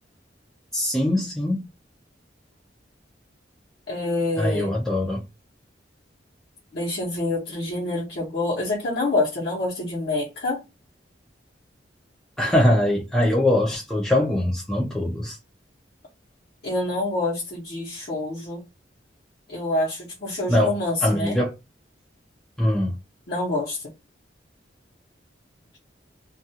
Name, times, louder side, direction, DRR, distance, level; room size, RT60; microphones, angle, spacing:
voice 1, 0.7-1.7 4.4-5.2 12.4-15.4 20.5-20.8 21.0-21.5 22.6-22.9, left 1 dB, 5° left, 0.4 m, -22 dB
voice 2, 3.9-4.7 6.7-10.6 16.6-18.6 19.5-21.4 23.3-23.9, left 2 dB, 60° left, 0.9 m, -27 dB
2.4 x 2.3 x 2.7 m
head